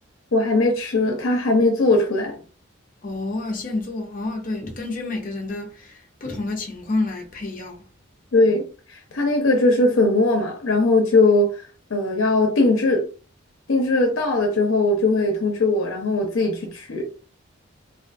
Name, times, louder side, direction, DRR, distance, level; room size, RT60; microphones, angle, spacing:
voice 1, 0.3-2.4 8.3-11.6 11.9-13.1 13.7-17.1, left 2 dB, 80° left, 0.6 m, -20 dB
voice 2, 3.0-7.8, left 2 dB, 40° left, 0.6 m, -29 dB
2.5 x 2.3 x 2.5 m
head